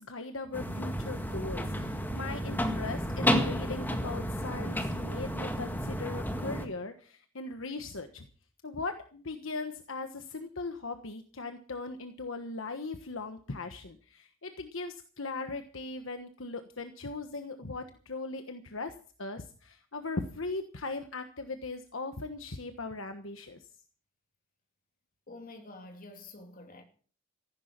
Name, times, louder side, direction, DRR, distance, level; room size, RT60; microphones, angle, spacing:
voice 1, 0.0-8.3 8.6-18.9 19.2-23.6, left 3 dB, 65° left, 1.3 m, -39 dB
sound 1, 0.5-6.7, equal, 10° left, 1.7 m, -32 dB
voice 2, 25.3-26.8, left 2 dB, 40° left, 2.8 m, -48 dB
15.0 x 12.0 x 6.0 m
head